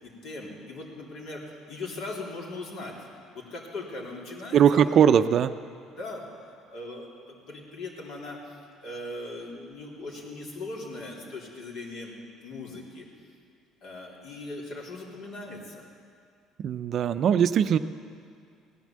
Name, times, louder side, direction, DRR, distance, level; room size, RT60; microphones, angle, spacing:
voice 1, 0.0-3.0 3.3-4.9 5.9-6.2 6.7-8.6 8.8-12.1 12.4-13.1 13.8-15.8, left 2 dB, 65° left, -2 dB, 3.5 m, -39 dB
voice 2, 4.5-5.5 16.6-17.8, right 8 dB, 50° right, 12 dB, 0.5 m, -20 dB
17.0 x 10.5 x 7.5 m, 2.3 s
cardioid pair, 115°, 0 cm